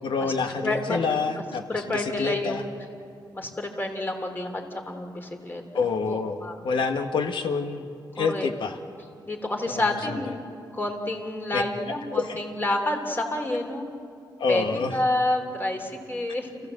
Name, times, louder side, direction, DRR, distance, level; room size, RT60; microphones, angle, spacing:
voice 1, 0.0-2.6 5.7-7.8 8.2-8.8 9.7-10.2 11.5-11.6 12.1-12.4 14.4-15.0, left 5 dB, 75° left, 6 dB, 1.6 m, -27 dB
voice 2, 0.6-1.0 1.7-2.6 3.3-6.5 8.2-8.5 9.3-10.4 10.7-13.9 14.5-14.6 14.9-16.5, left 1 dB, 25° left, 2 dB, 3.2 m, -29 dB
29.0 x 16.0 x 7.8 m, 2.4 s
cardioid pair, 105°, 8 cm